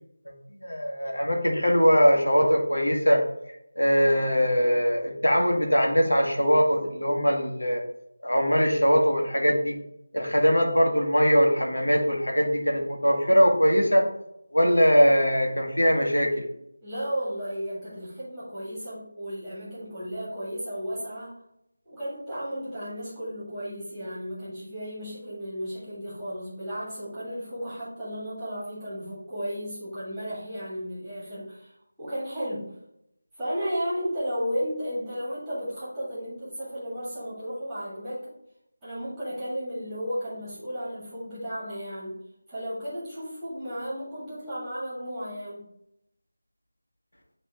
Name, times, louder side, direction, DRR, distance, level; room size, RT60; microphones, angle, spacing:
voice 1, 0.6-3.2 3.7-7.8 8.2-9.8 10.1-14.1 14.5-16.5, equal, 70° left, 1 dB, 1.4 m, -21 dB
voice 2, 16.8-21.4 21.9-32.7 33.4-38.3 38.8-42.2 42.5-45.7, equal, 5° right, -13 dB, 2.0 m, -34 dB
8.9 x 3.1 x 3.6 m, 0.80 s
figure-of-eight pair, 165°, 0 cm